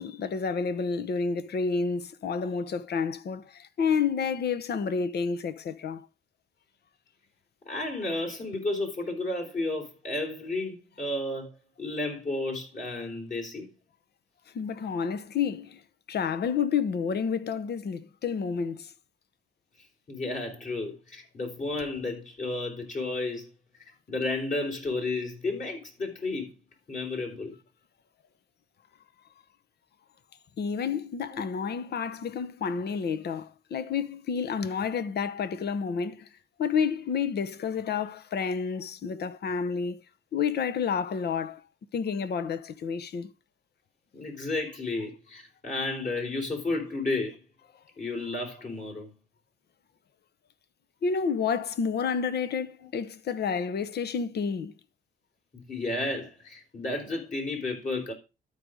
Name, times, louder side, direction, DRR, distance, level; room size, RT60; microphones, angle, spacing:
voice 1, 0.0-6.0 14.5-15.8 16.1-18.9 30.6-36.3 36.6-40.0 40.3-41.6 41.9-43.3 51.0-54.7, left 6 dB, 55° left, 0.9 m, -30 dB
voice 2, 7.6-13.7 20.1-23.5 24.1-26.5 26.9-27.6 31.3-31.5 44.1-47.4 48.0-49.1 55.5-58.1, left 2 dB, 40° left, 4.4 m, -32 dB
12.5 x 5.0 x 5.2 m
cardioid pair, 90°, 20 cm